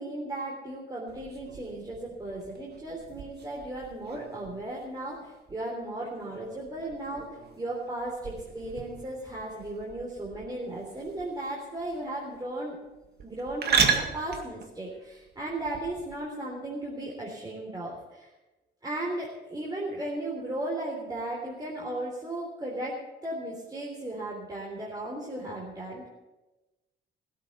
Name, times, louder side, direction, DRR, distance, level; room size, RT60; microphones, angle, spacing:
voice 1, 0.0-7.3 7.6-12.8 13.2-18.3 18.8-26.1, right 1 dB, 20° right, -4 dB, 3.6 m, -36 dB
sound 1, 1.1-16.1, right 6 dB, 55° right, 2.0 m, -35 dB
16.0 x 8.4 x 8.3 m, 1.1 s
cardioid pair, 90°, 20 cm